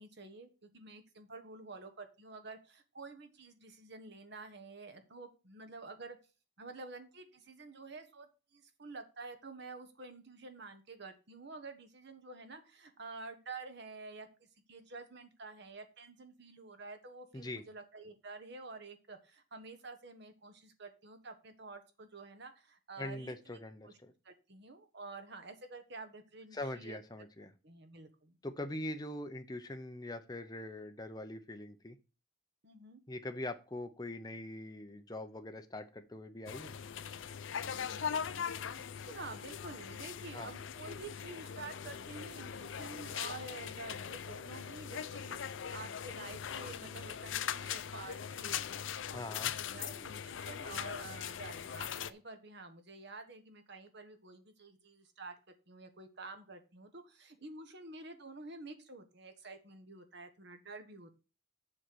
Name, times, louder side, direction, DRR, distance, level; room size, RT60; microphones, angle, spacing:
voice 1, 0.0-6.2 6.6-14.3 14.7-23.6 23.8-23.9 24.2-27.0 27.6-28.4 32.6-33.0 37.7-38.1 38.9-48.7 49.7-55.3 55.7-61.1, right 3 dB, 55° right, 7 dB, 1.3 m, -49 dB
voice 2, 23.0-24.1 26.5-27.5 28.4-32.0 33.1-36.8 40.3-40.5 49.1-49.5, left 1 dB, 20° left, 6 dB, 0.7 m, -42 dB
sound 1, 36.5-52.1, left 8 dB, 65° left, 0.5 m, -41 dB
7.6 x 4.4 x 6.3 m, 0.32 s
head